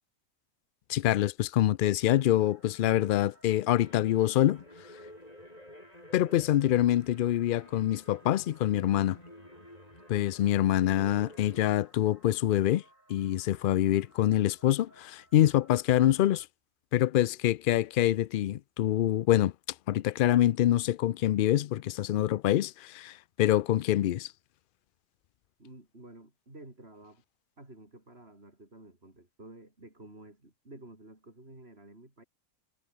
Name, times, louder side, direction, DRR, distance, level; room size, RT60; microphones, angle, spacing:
voice 1, 0.9-4.6 6.1-9.2 10.1-12.8 13.1-16.5 16.9-19.5 19.9-24.3, left 12 dB, 65° left, 0.5 m, -25 dB
sound 1, 2.0-16.5, right 2 dB, 75° right, 6.5 m, -62 dB
sound 2, 3.7-11.7, left 1 dB, 30° left, 8.2 m, -52 dB
voice 2, 25.6-27.2 27.6-32.2, right 2 dB, 50° right, 5.7 m, -51 dB
omnidirectional pair, 1.4 m